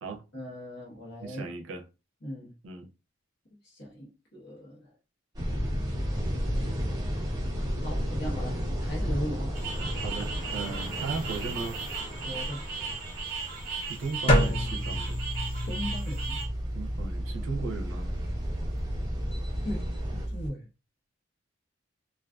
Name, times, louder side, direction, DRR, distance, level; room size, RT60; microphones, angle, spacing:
voice 1, 0.3-1.4 2.2-2.5 3.6-4.9 7.8-9.6 12.2-12.7 15.7-16.4 19.6-19.9 20.3-20.7, equal, 55° left, 1.0 m, -38 dB
voice 2, 1.2-1.8 2.6-2.9 10.0-11.8 13.8-15.2 16.7-18.1, right 4 dB, 85° right, 0.5 m, -37 dB
sound 1, 5.4-20.3, equal, 20° right, 0.7 m, -34 dB
sound 2, 9.5-16.5, right 5 dB, 50° right, 0.9 m, -37 dB
sound 3, 14.3-20.5, equal, 30° left, 0.6 m, -30 dB
2.4 x 2.4 x 2.3 m
head